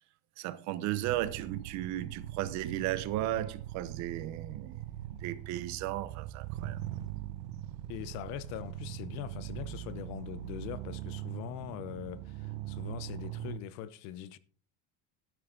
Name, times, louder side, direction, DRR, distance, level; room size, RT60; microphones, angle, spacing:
voice 1, 0.4-4.8 5.2-6.8, right 14 dB, 50° right, 1.0 m, -35 dB
sound 1, 1.0-13.6, right 13 dB, 90° right, 1.0 m, -41 dB
voice 2, 7.9-14.4, left 11 dB, 65° left, 1.0 m, -42 dB
13.0 x 9.6 x 3.9 m
cardioid pair, 175°, 35 cm